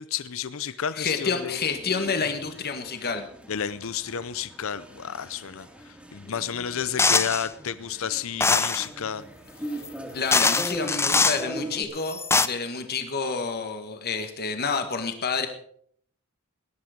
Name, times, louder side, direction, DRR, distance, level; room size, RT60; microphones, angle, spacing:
voice 1, 0.0-1.6 3.5-9.2, left 8 dB, 65° left, 15 dB, 0.6 m, -31 dB
voice 2, 1.0-3.3 10.1-12.2 12.4-15.5, left 5 dB, 50° left, 7 dB, 1.6 m, -29 dB
sound 1, 1.3-11.8, right 1 dB, 5° right, 2.4 m, -41 dB
sound 2, 7.0-7.5 8.4-8.9 9.8-9.9 10.3-11.4 12.1-12.5, left 4 dB, 10° left, 0.5 m, -22 dB
18.5 x 10.5 x 5.1 m, 0.63 s
head